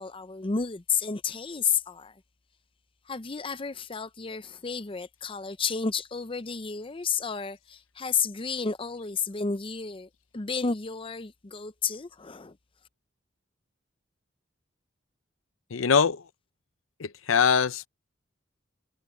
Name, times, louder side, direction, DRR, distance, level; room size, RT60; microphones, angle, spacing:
voice 1, 0.0-2.1 3.1-12.6, left 5 dB, 25° left, 0.6 m, -31 dB
voice 2, 15.7-16.2 17.0-17.9, left 6 dB, 80° left, 0.6 m, -23 dB
head